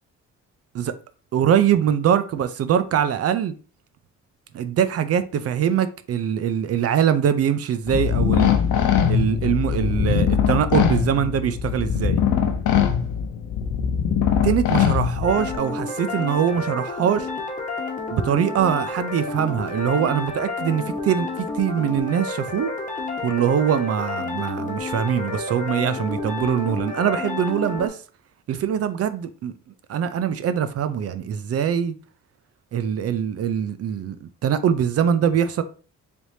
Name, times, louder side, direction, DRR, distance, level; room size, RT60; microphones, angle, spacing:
voice 1, 1.3-3.5 4.5-8.5 9.1-12.2 14.4-17.3 18.1-22.7 23.2-28.0 28.5-29.5 29.9-31.9 32.7-35.6, right 8 dB, 55° right, 0.5 m, -23 dB
sound 1, 7.9-15.6, left 8 dB, 80° left, 0.8 m, -21 dB
sound 2, 15.2-27.9, left 3 dB, 25° left, 1.3 m, -30 dB
4.5 x 3.4 x 2.7 m
cardioid pair, 90°, 30 cm